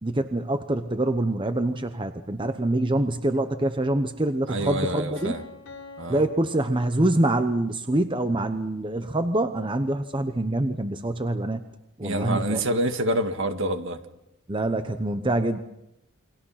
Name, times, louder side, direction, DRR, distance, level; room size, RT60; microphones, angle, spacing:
voice 1, 0.0-5.3 6.1-11.6 12.0-12.6 14.5-15.6, right 1 dB, 20° right, 8 dB, 0.9 m, -25 dB
voice 2, 4.5-5.4 6.0-6.2 12.0-14.0, right 1 dB, 60° right, 7 dB, 1.9 m, -27 dB
Piano, 4.7-7.4, left 3 dB, 70° left, 4.4 m, -45 dB
29.0 x 23.5 x 5.8 m, 0.85 s
head